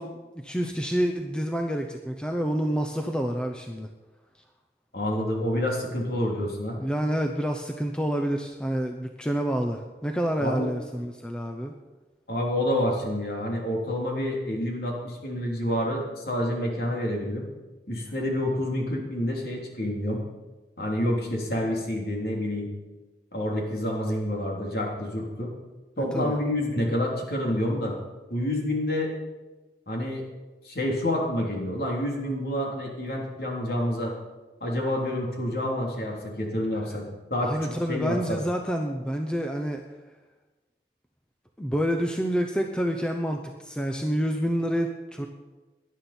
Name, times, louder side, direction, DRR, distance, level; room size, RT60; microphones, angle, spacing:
voice 1, 0.0-3.9 6.8-11.7 26.0-26.3 37.4-39.8 41.6-45.3, equal, 5° left, 3 dB, 0.8 m, -28 dB
voice 2, 4.9-6.8 10.4-10.7 12.3-17.4 17.9-20.2 20.8-22.7 23.3-25.5 26.0-27.9 28.3-29.1 29.9-30.3 30.6-34.1 34.6-38.4, left 1 dB, 60° left, -1 dB, 3.4 m, -28 dB
18.5 x 11.0 x 4.4 m, 1.2 s
head